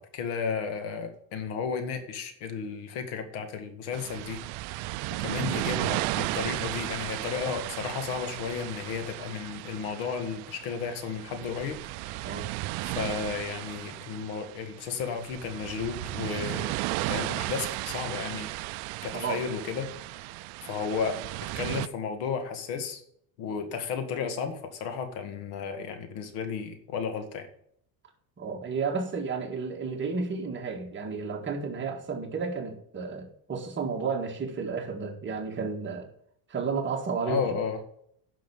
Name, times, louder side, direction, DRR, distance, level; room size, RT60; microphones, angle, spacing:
voice 1, 0.0-4.4 4.8-4.9 5.2-12.3 12.8-16.7 17.1-18.5 19.0-20.3 20.6-23.0 23.4-27.5 37.3-37.8, left 6 dB, 80° left, 2.1 m, -33 dB
sound 1, 3.9-21.9, right 20 dB, 60° right, 0.5 m, -35 dB
voice 2, 19.1-19.4 28.4-36.1 36.5-37.4, right 5 dB, 25° right, 1.9 m, -32 dB
10.5 x 6.2 x 7.1 m
cardioid pair, 145°, 44 cm